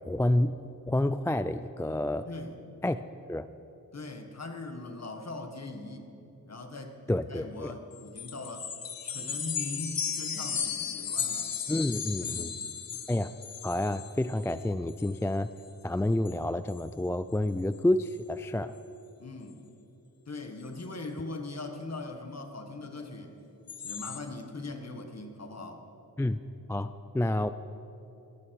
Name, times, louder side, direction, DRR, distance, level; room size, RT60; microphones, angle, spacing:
voice 1, 0.1-0.6 0.9-2.3 2.8-3.5 7.1-7.7 11.7-12.6 13.1-13.3 13.6-15.5 15.8-18.7 26.2-26.4 26.7-27.5, left 1 dB, 10° left, 13 dB, 0.3 m, -29 dB
voice 2, 2.2-2.6 3.9-6.1 6.4-7.0 7.3-8.7 9.0-11.5 12.2-12.6 19.2-19.6 20.3-23.4 23.8-25.8, left 2 dB, 45° left, 5 dB, 1.7 m, -40 dB
sound 1, 7.9-14.6 14.9-15.2 15.6-15.7 16.1-16.4 16.7-16.8 17.3-17.4 17.7-18.1 23.7-24.2, left 7 dB, 70° left, 1.1 m, -35 dB
18.0 x 14.5 x 4.8 m, 3.0 s
wide cardioid pair, 70°, 36 cm